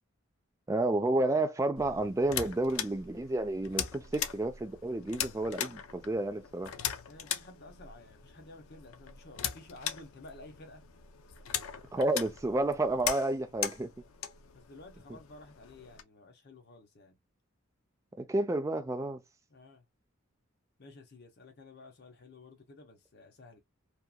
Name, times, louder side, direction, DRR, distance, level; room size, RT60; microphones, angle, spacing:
voice 1, 0.7-6.7 11.9-13.9 18.2-19.2, right 2 dB, 15° right, 0.3 m, -30 dB
sound 1, 1.8-16.0, left 9 dB, 90° left, 0.4 m, -40 dB
voice 2, 7.1-10.9 12.7-12.8 14.5-17.1 19.5-19.9 20.8-23.6, left 2 dB, 55° left, 0.8 m, -52 dB
2.8 x 2.4 x 2.2 m
head